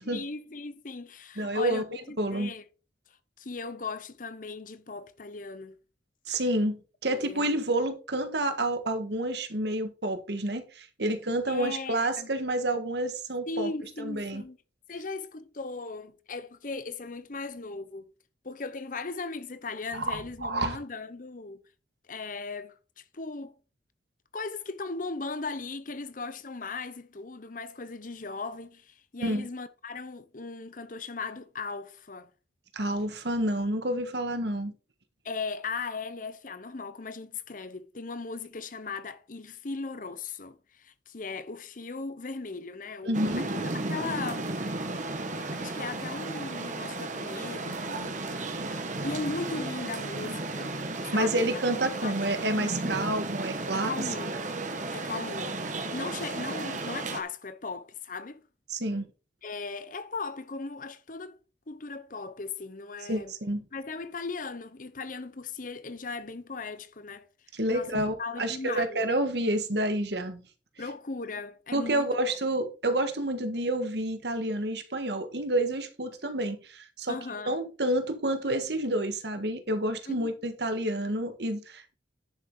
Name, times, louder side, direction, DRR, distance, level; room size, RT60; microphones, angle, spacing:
voice 1, 0.0-2.6 3.4-5.8 6.3-6.4 7.1-7.5 11.5-12.3 13.5-14.6 14.9-18.1 18.4-21.6 22.1-23.5 24.3-32.3 35.2-44.6 45.5-48.8 49.0-50.7 51.1-51.5 52.0-53.1 53.7-54.4 54.9-58.4 59.4-61.4 61.7-63.3 63.7-67.3 67.7-69.0 70.8-72.1 77.1-77.7 80.1-80.3, left 3 dB, 50° left, 0.9 m, -38 dB
voice 2, 1.4-1.8 2.2-2.5 6.3-13.7 14.0-14.4 19.9-20.8 29.2-29.5 32.7-34.7 43.0-43.5 51.1-53.9 58.7-59.1 63.1-63.6 67.5-70.4 71.7-77.2 77.4-81.9, right 1 dB, 70° right, 1.7 m, -29 dB
sound 1, 43.1-57.2, right 2 dB, 45° right, 1.5 m, -34 dB
10.5 x 7.2 x 3.9 m
head